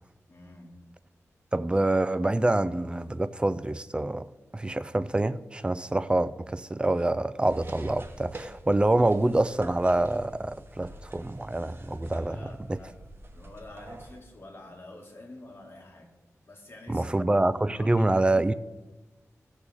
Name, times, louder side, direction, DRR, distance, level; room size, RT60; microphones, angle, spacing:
voice 1, 0.3-0.7 12.0-12.9 13.3-16.1 16.4-17.2 17.6-18.1, left 2 dB, 45° left, 2.3 m, -48 dB
voice 2, 1.5-4.3 4.5-12.4 16.9-18.5, right 2 dB, 20° right, 0.4 m, -26 dB
sound 1, 7.4-14.2, right 1 dB, 45° right, 0.9 m, -46 dB
15.5 x 6.3 x 3.6 m
wide cardioid pair, 80°, 5 cm